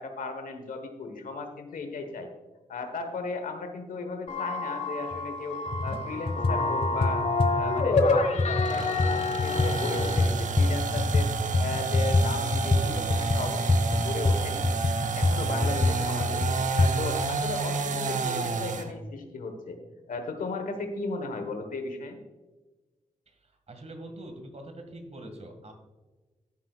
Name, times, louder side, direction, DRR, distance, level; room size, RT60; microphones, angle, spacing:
voice 1, 0.0-2.3 2.7-7.3 7.5-11.3 11.6-14.6 15.1-16.5 16.7-19.8 20.1-22.2, left 3 dB, 80° left, 7 dB, 1.3 m, -36 dB
sound 1, 4.3-10.3, left 3 dB, 60° left, 1.2 m, -28 dB
sound 2, 5.1-5.2 5.7-6.0 6.3-11.3 11.5-16.9, left 2 dB, 40° left, 1.2 m, -25 dB
sound 3, 8.6-18.9, right 4 dB, 70° right, 0.9 m, -30 dB
voice 2, 23.7-25.7, right 1 dB, 50° right, 5 dB, 2.0 m, -43 dB
14.0 x 7.7 x 2.4 m, 1.2 s
cardioid pair, 50°, 14 cm